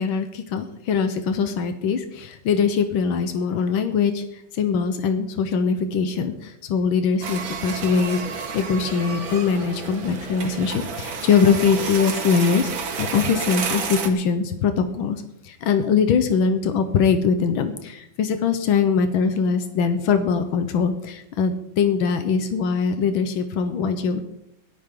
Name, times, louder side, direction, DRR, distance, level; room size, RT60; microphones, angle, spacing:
voice 1, 0.0-12.7 13.0-24.2, left 6 dB, 90° left, 8 dB, 1.8 m, -22 dB
sound 1, 7.2-14.1, right 5 dB, 80° right, 2.3 m, -30 dB
17.0 x 13.0 x 3.8 m, 0.79 s
omnidirectional pair, 2.1 m